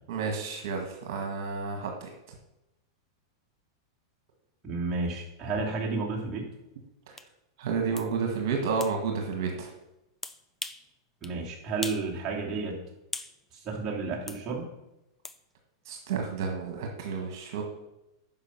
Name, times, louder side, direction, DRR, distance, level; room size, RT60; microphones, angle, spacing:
voice 1, 0.1-2.1 7.6-9.7 15.9-17.6, right 5 dB, 65° right, 3 dB, 1.7 m, -31 dB
voice 2, 4.6-6.4 11.2-12.8 13.5-14.7, right 3 dB, 25° right, -4 dB, 2.9 m, -31 dB
sound 1, 7.2-7.3 8.0-8.1 8.8-9.0 10.2-10.9 11.2-11.4 11.8-12.1 12.4-13.4 14.3-14.4 15.2-15.4, left 3 dB, 10° left, 0.5 m, -39 dB
9.8 x 5.8 x 5.8 m, 0.92 s
hypercardioid pair, 125°, 2 cm